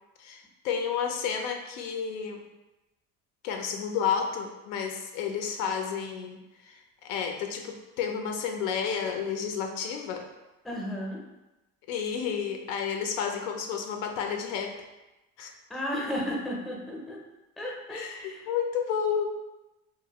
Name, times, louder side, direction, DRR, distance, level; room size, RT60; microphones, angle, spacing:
voice 1, 0.2-2.4 3.4-10.3 11.9-14.8 15.4-15.5 17.9-19.4, left 7 dB, 85° left, 4 dB, 0.5 m, -31 dB
voice 2, 10.6-11.2 15.7-17.2 17.6-18.4, left 1 dB, ahead, -3 dB, 0.5 m, -33 dB
2.6 x 2.3 x 2.8 m, 1.0 s
supercardioid pair, 110°, 36 cm